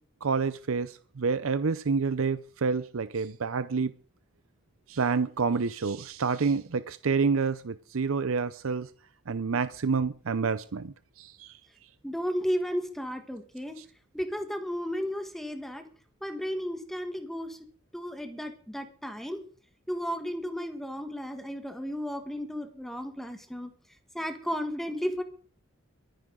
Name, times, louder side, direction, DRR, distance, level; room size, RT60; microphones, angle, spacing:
voice 1, 0.2-3.9 4.9-8.9 9.3-11.5 13.8-13.9, right 5 dB, 85° right, 0.6 m, -28 dB
voice 2, 12.0-13.8 14.1-15.8 16.2-17.6 17.9-19.4 19.9-23.7 24.1-25.2, equal, ahead, 1.4 m, -33 dB
23.0 x 10.0 x 3.8 m
head